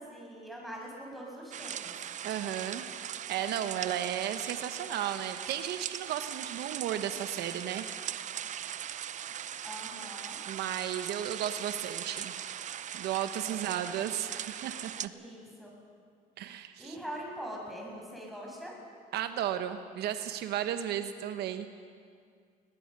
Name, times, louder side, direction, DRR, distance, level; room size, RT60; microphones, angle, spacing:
voice 1, 0.0-2.1 9.6-10.4 13.4-13.9 15.1-15.7 16.6-18.8, equal, ahead, -2 dB, 6.8 m, -43 dB
sound 1, 1.5-15.1, right 10 dB, 45° right, 0.6 m, -40 dB
voice 2, 2.2-7.8 10.5-12.3 12.9-15.1 16.4-16.9 19.1-21.7, right 10 dB, 75° right, 9 dB, 1.0 m, -34 dB
22.0 x 19.5 x 6.7 m, 2.2 s
cardioid pair, 110°, 17 cm